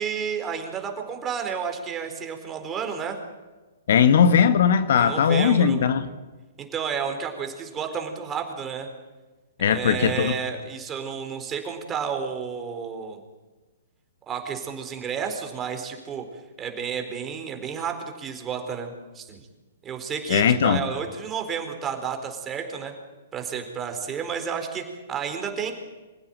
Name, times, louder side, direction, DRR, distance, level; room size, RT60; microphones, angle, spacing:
voice 1, 0.0-3.2 4.9-5.8 6.6-8.9 9.6-13.2 14.3-16.2 16.6-19.4 19.8-22.9 23.3-25.7, right 7 dB, 20° right, 4 dB, 4.3 m, -31 dB
voice 2, 3.9-6.1 9.6-10.3 20.3-20.8, left 7 dB, 55° left, 10 dB, 1.5 m, -19 dB
25.5 x 16.0 x 9.2 m, 1.2 s
figure-of-eight pair, 115°, 0 cm